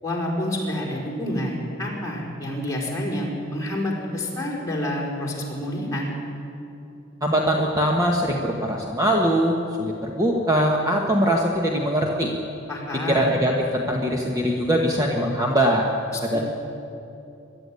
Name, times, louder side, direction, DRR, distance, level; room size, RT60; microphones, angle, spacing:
voice 1, 0.0-6.1 12.7-13.3 16.3-16.4, left 1 dB, 15° left, -3 dB, 4.6 m, -28 dB
voice 2, 7.2-12.3 13.1-15.8 16.2-16.4, equal, 15° right, 0 dB, 1.3 m, -22 dB
23.0 x 12.5 x 9.8 m, 2.8 s
head